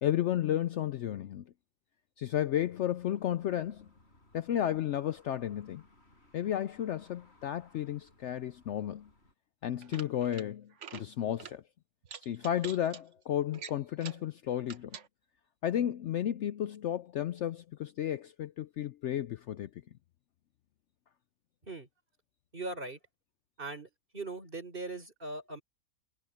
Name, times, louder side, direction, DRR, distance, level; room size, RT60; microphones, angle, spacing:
voice 1, 0.0-1.5 2.2-3.9 4.3-5.8 6.3-9.1 9.6-11.6 12.2-15.0 15.6-19.7, left 11 dB, 65° left, 0.8 m, -33 dB
sound 1, 2.5-9.3, left 1 dB, 45° left, 6.8 m, -63 dB
sound 2, 9.7-10.5 10.7-11.1 11.4-11.6 12.0-13.0 13.5-14.3 14.6-15.1, right 7 dB, 60° right, 1.3 m, -46 dB
voice 2, 22.5-23.0 23.6-25.6, right 2 dB, 40° right, 4.3 m, -40 dB
omnidirectional pair, 1.5 m